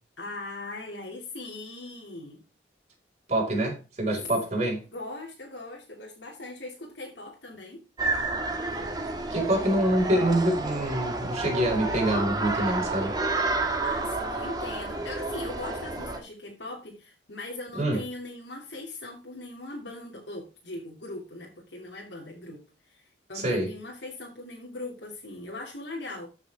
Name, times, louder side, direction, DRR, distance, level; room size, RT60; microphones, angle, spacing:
voice 1, 0.2-2.4 4.9-7.8 13.5-26.3, left 2 dB, 80° left, 2.9 m, -40 dB
voice 2, 3.3-4.8 9.3-13.1 17.7-18.0 23.3-23.7, right 1 dB, 40° right, 5.6 m, -26 dB
sound 1, 8.0-16.2, right 2 dB, 25° right, 2.0 m, -30 dB
14.0 x 6.8 x 3.6 m
head